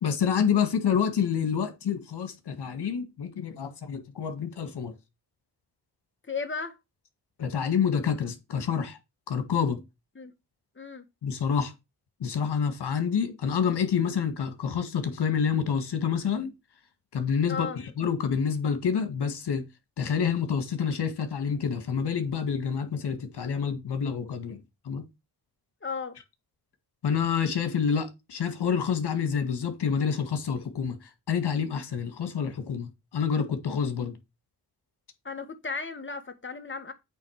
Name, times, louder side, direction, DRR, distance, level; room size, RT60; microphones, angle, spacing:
voice 1, 0.0-4.9 7.4-9.0 9.3-9.8 11.2-11.7 12.2-16.5 17.1-19.7 20.0-24.6 24.9-25.0 27.0-34.2, left 7 dB, 70° left, 1.9 m, -28 dB
voice 2, 6.3-6.7 10.1-10.3 10.8-11.0 17.5-17.8 25.8-26.2 35.2-36.9, left 5 dB, 30° left, 1.8 m, -35 dB
8.3 x 3.6 x 6.5 m
cardioid pair, 65°, 41 cm